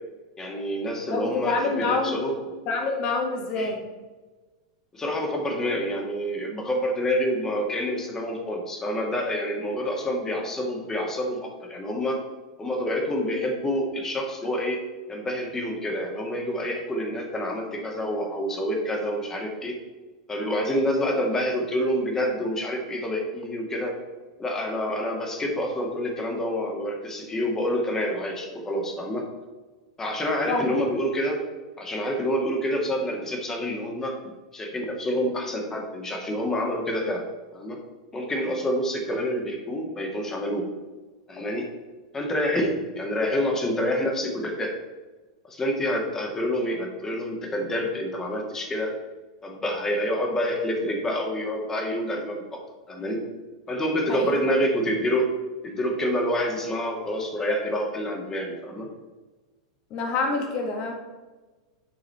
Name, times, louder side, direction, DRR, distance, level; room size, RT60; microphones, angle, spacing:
voice 1, 0.4-2.4 3.6-3.7 4.9-12.2 12.6-14.8 15.1-19.7 20.3-23.9 24.4-29.2 30.0-31.4 31.8-34.1 34.5-37.2 37.5-37.8 38.1-40.7 41.3-41.7 42.1-44.7 45.4-48.9 49.4-52.6 52.9-53.2 53.7-55.3 55.6-58.9, equal, 15° left, 1 dB, 1.9 m, -27 dB
voice 2, 1.1-2.2 2.7-3.8 30.5-30.8 54.1-54.4 59.9-60.9, left 3 dB, 40° left, 3 dB, 1.8 m, -27 dB
8.4 x 6.0 x 4.3 m, 1.2 s
figure-of-eight pair, 90°, 3 cm